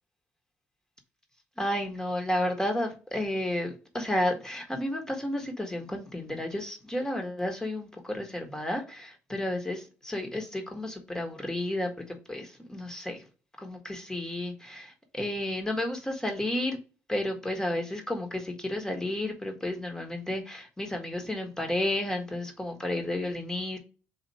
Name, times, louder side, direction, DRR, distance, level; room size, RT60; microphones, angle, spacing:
voice 1, 1.6-13.2 13.6-16.8 17.1-23.8, left 1 dB, 10° left, 1.5 m, -32 dB
4.2 x 2.8 x 4.2 m
supercardioid pair, 80°, 5 cm